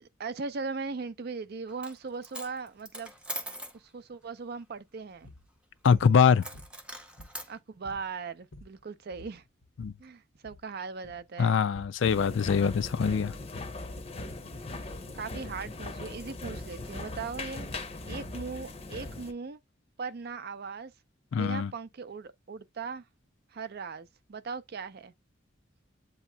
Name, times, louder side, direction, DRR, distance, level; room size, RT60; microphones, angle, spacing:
voice 1, 0.0-3.1 3.7-5.3 7.5-9.4 10.0-11.6 14.8-14.9 15.1-19.6 20.0-20.9 21.3-23.0 23.5-25.1, right 4 dB, 55° right, 0.5 m, -39 dB
Coin (dropping), 1.7-2.0 2.2-3.8 6.4-7.5, right 1 dB, 5° right, 0.6 m, -41 dB
sound 1, 5.2-5.5 5.9-6.1 6.5-7.5 7.8-8.1 8.4-8.8 9.1-10.0 10.4-10.7 11.0-11.3 11.7-12.0 12.4-14.4, left 1 dB, 85° left, 1.0 m, -51 dB
voice 2, 5.8-6.5 9.8-9.9 11.4-13.3 21.3-21.7, left 6 dB, 70° left, 0.4 m, -23 dB
sound 2, 12.0-19.3, left 2 dB, 30° left, 0.7 m, -39 dB
8.1 x 2.9 x 2.2 m
head